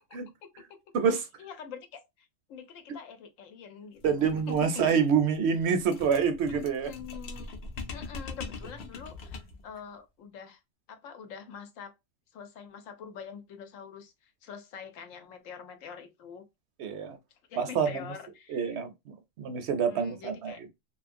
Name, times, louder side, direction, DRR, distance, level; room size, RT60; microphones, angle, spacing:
voice 1, 0.4-0.8 1.1-5.0 6.8-7.5 7.9-10.6 10.9-11.9 12.3-16.4 17.5-18.8 19.9-20.6, left 7 dB, 85° left, 1.0 m, -45 dB
voice 2, 0.9-1.3 4.0-6.9 16.8-17.2 17.5-18.0 18.5-20.7, right 6 dB, 65° right, 0.7 m, -27 dB
sound 1, 4.0-9.7, left 3 dB, 60° left, 0.7 m, -42 dB
2.6 x 2.4 x 2.5 m
omnidirectional pair, 1.3 m